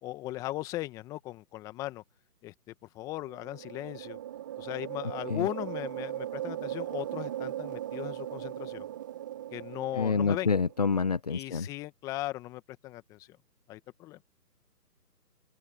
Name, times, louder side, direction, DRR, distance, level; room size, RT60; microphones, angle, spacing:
voice 1, 0.0-2.0 2.4-4.2 4.6-8.9 9.5-10.5 11.3-13.4 13.7-14.2, left 16 dB, 5° left, 1.2 m, -38 dB
sound 1, 3.2-10.9, right 12 dB, 10° right, 1.0 m, -38 dB
voice 2, 10.0-11.7, left 5 dB, 25° left, 0.7 m, -27 dB
open air
figure-of-eight pair, 150°, 49 cm